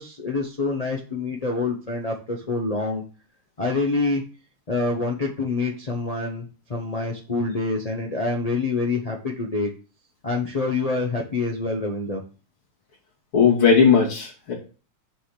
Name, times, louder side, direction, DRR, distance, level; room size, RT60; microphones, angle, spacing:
voice 1, 0.0-3.0 3.6-4.2 4.7-9.7 10.2-12.2, left 3 dB, 45° left, -2 dB, 0.4 m, -26 dB
voice 2, 13.3-14.5, left 6 dB, 80° left, -4 dB, 3.3 m, -17 dB
6.2 x 4.9 x 5.7 m, 0.36 s
omnidirectional pair, 2.3 m